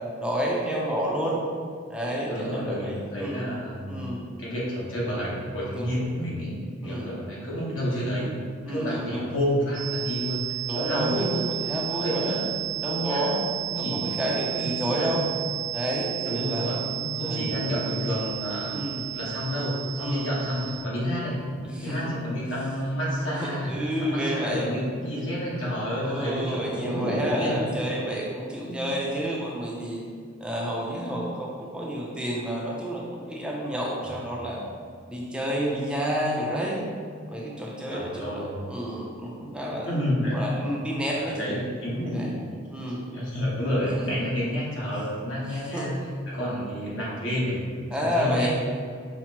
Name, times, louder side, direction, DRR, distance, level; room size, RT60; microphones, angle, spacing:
voice 1, 0.2-1.4 1.9-3.5 3.9-4.2 5.7-6.1 6.8-7.1 8.6-9.2 10.6-12.4 12.8-13.4 13.8-15.2 15.7-16.7 17.2-17.8 18.7-19.0 20.0-20.3 21.6-22.2 23.3-24.7 26.0-30.0 30.4-34.6 35.1-36.8 37.3-39.9 40.3-41.5 42.1-42.3 42.7-43.0 43.9-44.2 45.5-45.9 47.9-48.5, equal, 5° right, -4 dB, 0.4 m, -30 dB
voice 2, 2.1-4.1 4.4-6.5 6.8-8.3 8.7-10.4 10.7-11.4 11.9-12.5 12.8-13.3 13.7-14.2 14.5-15.5 16.2-18.8 19.1-21.4 21.8-23.7 24.0-27.7 28.6-28.8 31.0-31.1 34.0-34.2 37.9-38.7 39.8-40.4 41.2-42.4 42.9-45.9 46.3-47.6 48.0-48.5, equal, 80° left, -7 dB, 1.2 m, -30 dB
sound 1, 9.7-20.8, right 14 dB, 65° right, 0.4 m, -33 dB
5.7 x 2.0 x 2.9 m, 2.1 s
head